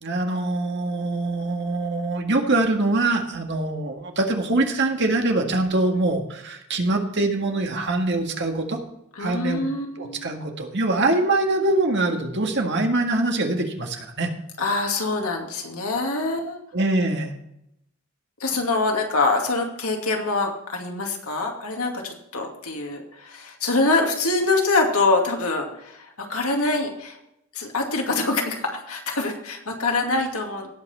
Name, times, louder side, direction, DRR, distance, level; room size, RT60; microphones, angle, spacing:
voice 1, 0.0-8.8 9.2-9.6 10.0-14.3 16.7-17.3, right 2 dB, 50° right, 3 dB, 1.8 m, -23 dB
voice 2, 9.2-10.3 14.6-16.6 18.4-27.2 27.5-30.7, left 3 dB, 80° left, 1 dB, 2.4 m, -25 dB
17.5 x 5.9 x 4.3 m, 0.80 s
head